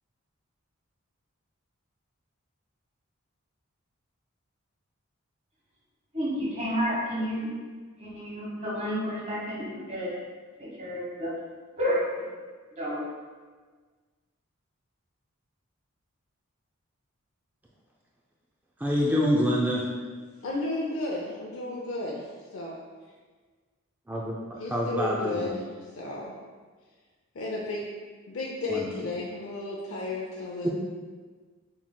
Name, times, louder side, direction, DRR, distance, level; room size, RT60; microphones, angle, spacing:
voice 1, 6.1-7.5 8.0-10.1 10.6-11.3 11.8-12.2 12.7-13.1, equal, 30° right, -6 dB, 1.3 m, -30 dB
voice 2, 18.8-19.9 24.1-25.5 28.7-28.9 30.6-30.7, equal, 10° right, -3 dB, 0.3 m, -26 dB
voice 3, 20.4-22.8 24.6-26.3 27.3-27.8 28.3-30.7, left 2 dB, 65° left, -3 dB, 0.5 m, -33 dB
7.2 x 3.0 x 2.2 m, 1.4 s
head